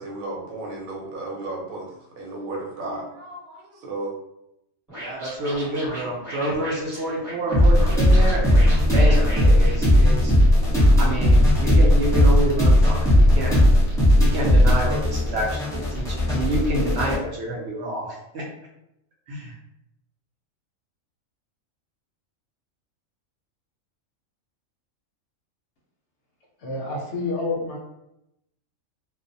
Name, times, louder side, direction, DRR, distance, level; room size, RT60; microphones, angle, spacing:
voice 1, 0.0-4.2, right 2 dB, 85° right, -1 dB, 1.1 m, -34 dB
Scratching (performance technique), 4.9-10.4, equal, 15° right, 1.0 m, -37 dB
voice 2, 5.0-10.3 11.0-13.6 14.2-18.5 19.3-19.5, right 1 dB, 65° right, -2 dB, 0.7 m, -28 dB
sound 1, 7.5-17.2, left 1 dB, 5° left, 0.5 m, -17 dB
voice 3, 26.6-27.8, left 3 dB, 65° left, -1 dB, 0.8 m, -28 dB
2.4 x 2.1 x 2.6 m, 0.84 s
omnidirectional pair, 1.4 m